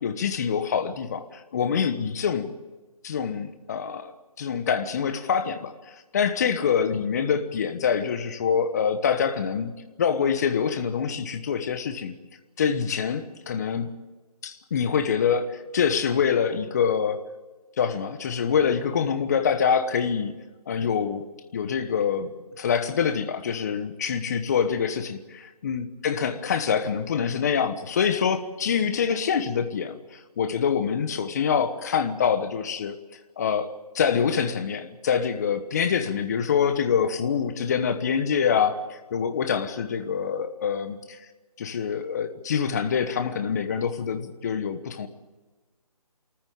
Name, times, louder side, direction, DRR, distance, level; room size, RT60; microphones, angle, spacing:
voice 1, 0.0-2.5 3.0-4.1 4.4-9.7 10.0-12.1 12.6-13.9 14.4-17.2 17.8-20.3 20.7-21.2 21.5-33.0 33.4-41.2 41.6-45.1, left 7 dB, 25° left, 9 dB, 1.2 m, -25 dB
24.5 x 14.5 x 8.9 m, 1.2 s
figure-of-eight pair, 165°, 20 cm